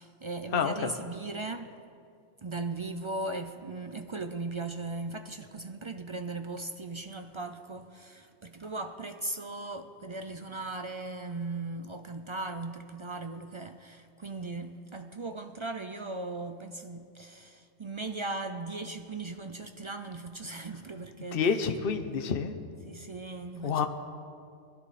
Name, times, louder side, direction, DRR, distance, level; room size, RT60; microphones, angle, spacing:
voice 1, 0.0-1.8 2.4-21.6 22.9-23.9, right 3 dB, 45° right, 0.3 m, -38 dB
voice 2, 0.5-0.9 21.3-22.5 23.6-23.9, left 6 dB, 55° left, 1.0 m, -28 dB
21.0 x 13.5 x 4.2 m
omnidirectional pair, 1.3 m